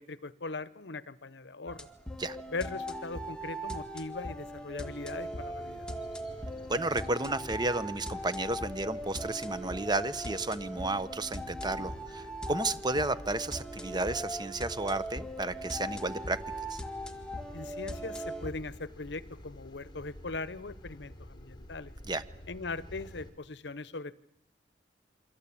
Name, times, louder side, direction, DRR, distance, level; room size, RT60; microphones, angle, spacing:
voice 1, 0.0-1.9 2.5-5.9 17.5-21.9 22.5-24.2, left 3 dB, 70° left, 17 dB, 0.9 m, -40 dB
sound 1, 1.7-18.5, equal, 5° left, 2.0 m, -40 dB
sound 2, 4.8-23.3, left 1 dB, 25° left, 4.0 m, -51 dB
voice 2, 6.7-16.4 16.7-16.8 22.0-22.2, right 2 dB, 25° right, 14 dB, 1.0 m, -32 dB
sound 3, 11.4-22.6, equal, 55° left, 2.9 m, -53 dB
28.0 x 24.5 x 8.6 m, 0.86 s
head